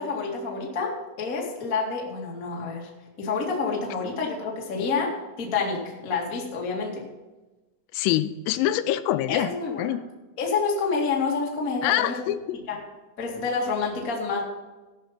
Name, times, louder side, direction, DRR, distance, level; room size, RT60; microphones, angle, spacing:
voice 1, 0.0-2.9 3.2-7.0 9.3-9.9 10.4-12.2 12.7-12.8 13.2-14.4, left 4 dB, 65° left, -2 dB, 0.8 m, -28 dB
voice 2, 7.9-9.5 9.8-10.0 11.8-12.6, left 13 dB, 85° left, 13 dB, 3.2 m, -25 dB
16.5 x 6.0 x 5.8 m, 1.1 s
omnidirectional pair, 5.9 m